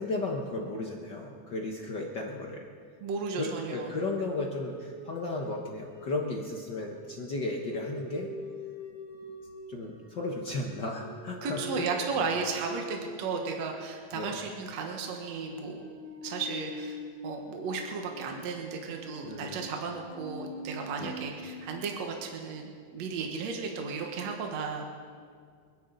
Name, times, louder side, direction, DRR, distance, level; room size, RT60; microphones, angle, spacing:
voice 1, 0.0-2.6 3.4-8.3 9.7-11.9 14.1-14.4 19.2-19.6 21.0-21.1, left 2 dB, 55° left, 0 dB, 1.3 m, -34 dB
voice 2, 3.0-3.9 11.4-15.9 16.2-17.0 17.2-24.8, right 5 dB, 65° right, 2 dB, 2.3 m, -34 dB
sound 1, 3.8-21.7, left 1 dB, 30° right, 4.8 m, -45 dB
29.0 x 10.5 x 4.0 m, 2.1 s
omnidirectional pair, 3.5 m